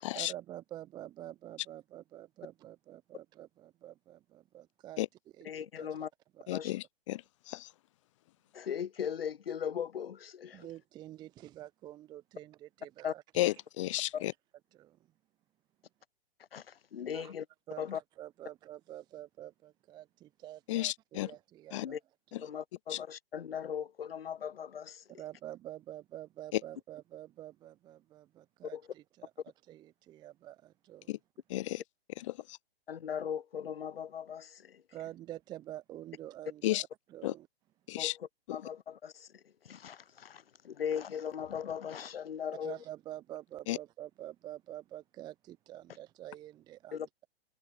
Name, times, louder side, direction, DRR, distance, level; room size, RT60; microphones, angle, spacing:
voice 1, 0.1-5.0 5.4-5.9 6.4-6.6 10.5-13.5 14.8-15.0 17.1-17.3 17.7-22.0 22.3-22.5 25.2-29.3 29.7-31.1 34.9-37.5 42.6-47.3, right 13 dB, 15° right, 0.7 m, -47 dB
voice 2, 5.4-6.1 6.5-6.7 8.5-10.7 13.0-13.1 14.1-14.2 16.5-17.5 17.8-18.0 21.8-22.0 22.4-25.0 28.7-28.8 32.9-34.8 38.0-42.8 46.9-47.1, left 8 dB, 70° left, 0.7 m, -39 dB
voice 3, 6.5-7.7 13.4-14.3 20.7-21.3 21.7-21.9 22.3-22.4 22.9-23.0 26.5-26.6 31.1-31.2 31.5-31.8 32.3-32.6 36.6-36.8 37.2-37.3 37.9-38.1 38.5-38.6 43.7-43.8, left 16 dB, 30° left, 0.6 m, -33 dB
figure-of-eight pair, 120°, 31 cm